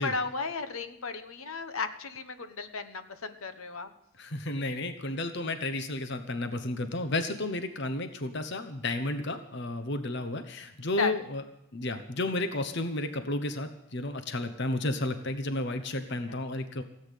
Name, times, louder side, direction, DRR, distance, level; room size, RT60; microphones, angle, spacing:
voice 1, 0.0-3.9 11.0-11.1, left 4 dB, 75° left, 11 dB, 1.2 m, -34 dB
voice 2, 4.2-11.4 11.7-16.8, left 2 dB, 50° left, 9 dB, 1.0 m, -32 dB
17.0 x 8.8 x 8.2 m, 0.84 s
head